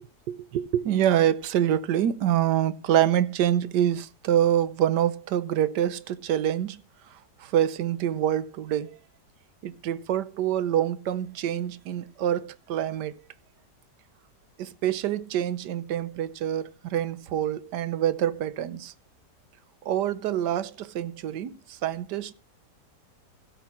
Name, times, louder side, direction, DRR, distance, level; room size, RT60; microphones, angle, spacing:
voice 1, 0.0-6.8 7.4-9.0 9.6-13.1 14.6-18.9 19.8-22.3, right 11 dB, 80° right, 1.4 m, -26 dB
16.5 x 5.8 x 6.0 m
omnidirectional pair, 1.8 m